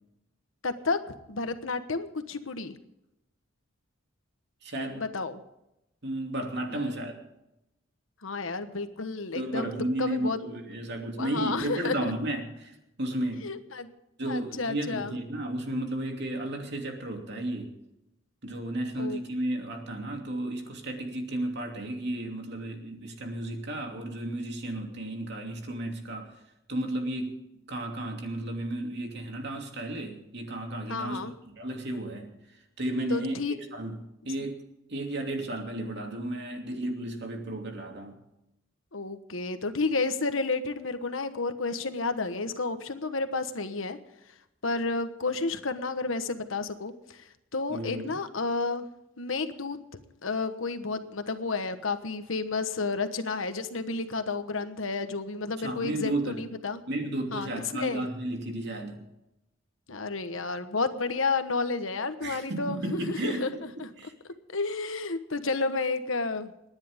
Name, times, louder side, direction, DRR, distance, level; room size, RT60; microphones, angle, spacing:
voice 1, 0.6-2.8 5.0-5.4 6.7-7.0 8.2-9.7 10.0-10.4 11.2-12.1 13.4-13.9 14.2-15.1 19.0-19.2 30.9-31.3 33.1-33.5 38.9-44.0 44.6-47.2 47.5-48.9 49.2-49.8 50.2-56.8 57.3-58.1 59.9-63.9 64.5-66.5, left 3 dB, 85° left, 9 dB, 1.3 m, -31 dB
voice 2, 4.6-5.0 6.0-7.2 9.3-13.5 14.2-17.7 18.4-26.3 26.7-27.4 27.7-31.3 31.6-32.3 32.8-34.0 34.2-34.6 34.9-38.2 47.7-48.2 55.6-56.3 56.9-59.0 62.2-64.1, right 1 dB, 60° right, 3 dB, 2.8 m, -33 dB
28.5 x 10.5 x 3.7 m, 0.90 s
head